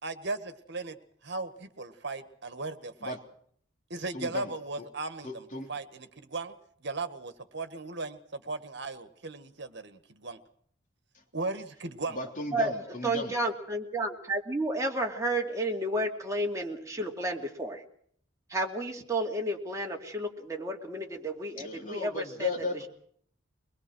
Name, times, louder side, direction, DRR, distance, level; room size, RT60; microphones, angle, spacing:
voice 1, 0.0-1.0 1.2-3.2 3.9-6.5 6.8-10.4 11.3-12.2, right 3 dB, 60° right, 9 dB, 1.8 m, -37 dB
voice 2, 4.1-4.5 5.2-5.7 12.1-13.4 21.5-22.9, left 2 dB, 40° left, 2 dB, 3.5 m, -36 dB
voice 3, 13.0-17.8 18.5-22.5, right 1 dB, 15° right, 1 dB, 2.7 m, -31 dB
23.0 x 21.5 x 6.3 m, 0.62 s
head